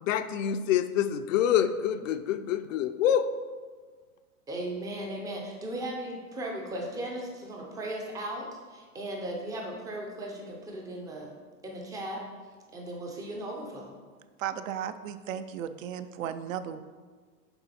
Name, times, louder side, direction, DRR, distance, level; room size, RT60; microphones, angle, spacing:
voice 1, 0.0-3.3, left 9 dB, 60° left, 10 dB, 0.5 m, -26 dB
voice 2, 4.5-11.3 11.6-12.2 12.7-14.0, right 1 dB, 10° right, 0 dB, 0.4 m, -37 dB
voice 3, 14.4-16.8, right 9 dB, 60° right, 11 dB, 0.5 m, -35 dB
7.0 x 4.7 x 4.2 m, 1.5 s
hypercardioid pair, 140°, 45 cm